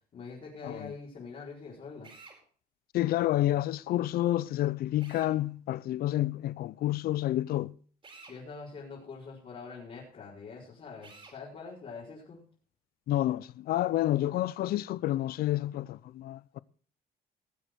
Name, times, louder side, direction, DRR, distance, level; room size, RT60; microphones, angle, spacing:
voice 1, 0.1-2.1 8.3-12.4, left 4 dB, 45° left, 4.8 m, -44 dB
Drill, 2.0-2.4 5.0-5.4 8.0-8.4 11.0-11.4, right 3 dB, 30° right, 4.6 m, -51 dB
voice 2, 2.9-7.7 13.1-16.6, left 14 dB, 65° left, 0.5 m, -29 dB
19.5 x 7.9 x 4.6 m
cardioid pair, 110°, 17 cm